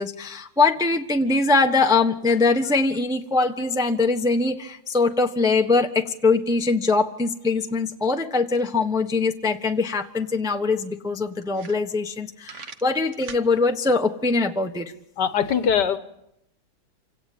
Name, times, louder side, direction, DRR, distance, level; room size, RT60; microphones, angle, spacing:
voice 1, 0.0-14.9, left 3 dB, 5° right, 5 dB, 0.9 m, -22 dB
sound 1, 10.1-10.2 10.5-10.6 11.1-11.2 11.5-12.2 12.4-13.5, right 5 dB, 45° right, 1.3 m, -41 dB
voice 2, 15.2-16.0, left 8 dB, 60° left, 11 dB, 1.6 m, -21 dB
27.5 x 17.5 x 8.6 m, 0.82 s
omnidirectional pair, 2.2 m